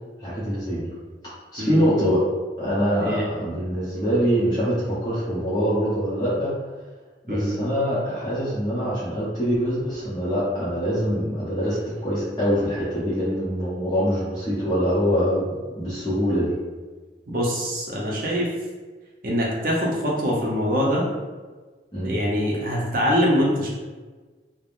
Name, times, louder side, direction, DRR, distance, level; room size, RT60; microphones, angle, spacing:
voice 1, 0.2-0.9 1.5-2.2 2.6-6.5 7.2-16.6 21.9-22.1, equal, 20° left, -11 dB, 0.6 m, -24 dB
voice 2, 17.3-18.5 19.2-21.1 22.0-23.7, equal, 50° right, -4 dB, 0.6 m, -23 dB
3.3 x 2.0 x 2.5 m, 1.3 s
head